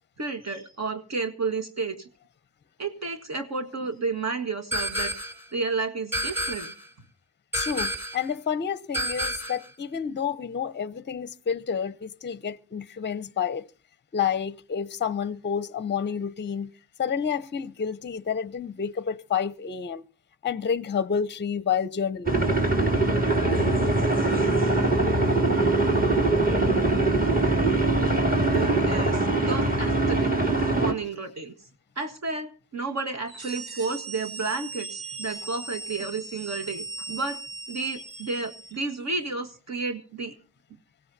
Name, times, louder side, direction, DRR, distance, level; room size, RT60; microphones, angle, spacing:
voice 1, 0.2-2.1 2.8-5.1 5.5-6.7 28.4-30.3 30.7-31.5 31.9-37.4 37.7-40.3, right 4 dB, 45° right, 1.7 m, -31 dB
sound 1, 4.7-5.4 6.1-6.9 7.5-8.3 8.9-9.7, equal, 5° right, 3.6 m, -30 dB
voice 2, 7.5-13.7 14.1-16.7 17.0-20.0 20.4-22.4, left 7 dB, 30° left, 0.7 m, -29 dB
sound 2, 22.3-30.9, right 2 dB, 25° right, 2.9 m, -22 dB
sound 3, 33.2-38.9, right 3 dB, 90° right, 2.0 m, -39 dB
24.5 x 17.0 x 2.7 m
cardioid pair, 100°, 37 cm